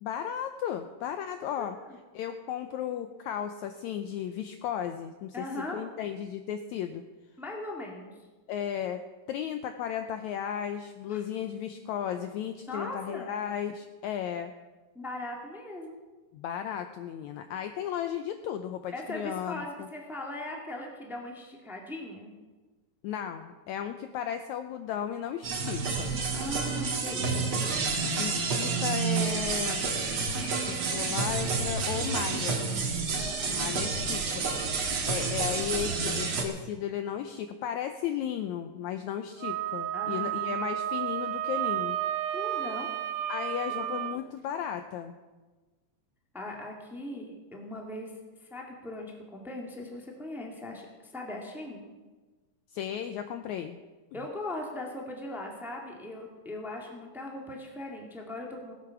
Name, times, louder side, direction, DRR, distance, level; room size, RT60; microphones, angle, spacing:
voice 1, 0.0-1.8 2.1-7.0 8.5-9.0 9.3-14.5 16.3-19.9 23.0-26.1 28.1-29.9 30.6-32.7 33.5-42.0 43.3-45.1 52.7-53.8, left 9 dB, 85° left, 8 dB, 1.7 m, -35 dB
voice 2, 1.6-2.0 5.3-5.8 7.4-8.1 11.1-11.2 12.7-13.3 14.9-16.0 18.9-22.3 26.3-27.3 33.1-33.7 39.9-40.5 42.3-42.9 43.7-44.2 46.3-48.1 48.4-51.8 54.1-58.7, left 1 dB, ahead, 0 dB, 1.3 m, -39 dB
sound 1, 25.4-36.4, right 4 dB, 45° right, 2.1 m, -29 dB
Wind instrument woodwind instrument, 39.4-44.2, right 12 dB, 75° right, 2.0 m, -32 dB
19.5 x 8.4 x 5.9 m, 1.3 s
omnidirectional pair, 3.9 m